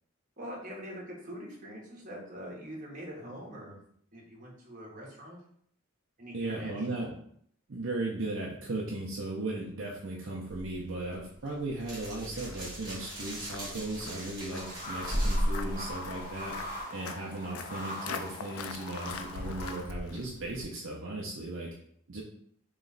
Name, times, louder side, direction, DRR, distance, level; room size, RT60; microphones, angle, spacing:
voice 1, 0.4-3.8 4.1-5.4 6.2-7.1, equal, 40° right, -3 dB, 1.1 m, -44 dB
voice 2, 6.3-7.1 7.7-16.6 16.9-21.7 22.1-22.2, right 2 dB, 60° right, -3 dB, 0.6 m, -36 dB
sound 1, 10.5-16.8, equal, 20° right, 1.5 m, -36 dB
Walk footsteps, 12.0-20.7, left 5 dB, 85° left, 0.4 m, -44 dB
sound 2, 14.5-19.8, left 1 dB, 20° left, 1.6 m, -42 dB
3.1 x 3.1 x 3.9 m, 0.65 s
head